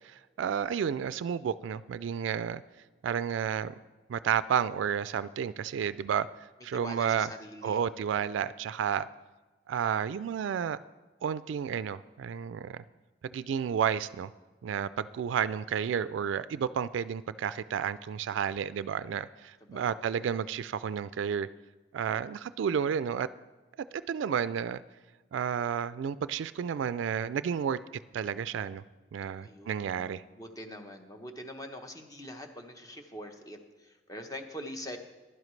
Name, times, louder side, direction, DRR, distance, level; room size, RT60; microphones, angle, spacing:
voice 1, 0.0-2.6 3.0-3.7 4.1-6.3 6.6-7.3 7.6-9.1 9.7-10.8 11.2-12.8 13.3-14.3 14.6-21.5 21.9-23.3 23.9-24.8 25.3-27.8 28.1-28.8 29.1-30.2, right 8 dB, 85° right, 15 dB, 0.3 m, -31 dB
voice 2, 6.7-7.8 19.6-20.1 29.4-35.0, equal, 20° left, 5 dB, 0.9 m, -44 dB
15.5 x 11.0 x 3.2 m, 1.2 s
head